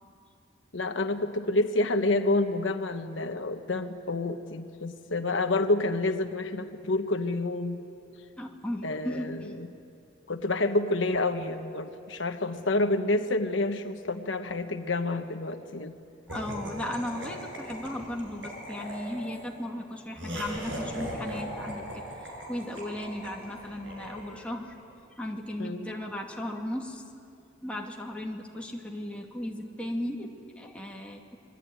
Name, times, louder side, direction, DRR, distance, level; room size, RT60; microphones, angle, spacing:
voice 1, 0.7-7.8 8.8-9.6 10.3-16.0 25.6-25.9, left 2 dB, 75° left, 7 dB, 1.2 m, -28 dB
voice 2, 8.4-9.6 16.3-22.0 22.5-24.7 25.2-27.0 27.6-31.4, left 1 dB, 5° left, -1 dB, 2.3 m, -36 dB
Laughter, 16.3-24.7, equal, 70° right, 6.4 m, -39 dB
26.5 x 22.0 x 9.2 m, 2.5 s
head